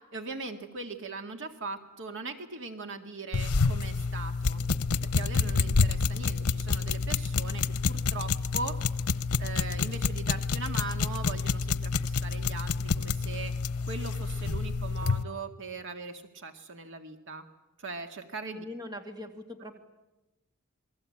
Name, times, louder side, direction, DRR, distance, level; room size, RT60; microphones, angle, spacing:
voice 1, 0.1-4.6 5.0-8.8 9.4-13.5 13.9-17.4 17.8-18.7, right 4 dB, 60° right, 6 dB, 2.0 m, -40 dB
sound 1, 3.3-15.2, left 4 dB, 85° left, 0.8 m, -28 dB
voice 2, 18.6-19.8, left 1 dB, 20° right, 5 dB, 2.4 m, -41 dB
28.0 x 21.5 x 8.7 m, 1.0 s
head